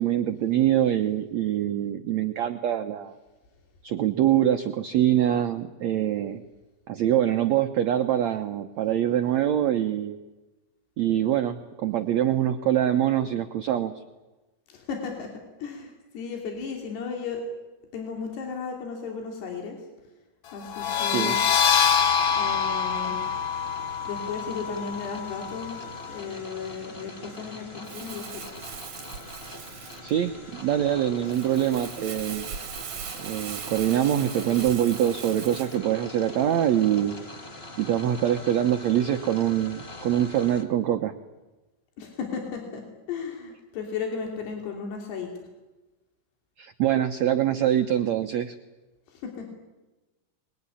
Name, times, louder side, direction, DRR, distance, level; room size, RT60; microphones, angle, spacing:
voice 1, 0.0-3.1 3.8-6.4 6.9-10.2 11.0-14.0 21.0-21.4 30.0-32.5 33.2-37.2 37.8-41.1 46.6-48.5, right 11 dB, 80° right, 7 dB, 1.5 m, -24 dB
voice 2, 14.7-15.3 15.6-17.4 17.9-19.8 20.5-21.5 22.4-23.2 24.1-28.5 42.0-45.3 49.1-49.5, left 5 dB, 85° left, 2 dB, 5.1 m, -35 dB
sound 1, 20.7-26.1, left 7 dB, 60° left, 1.6 m, -25 dB
sound 2, 21.5-40.6, left 1 dB, 20° left, 1.6 m, -43 dB
Crumpling crinkling, 27.8-35.8, right 8 dB, 50° right, 2.0 m, -40 dB
24.5 x 21.5 x 9.9 m, 1.1 s
omnidirectional pair, 4.7 m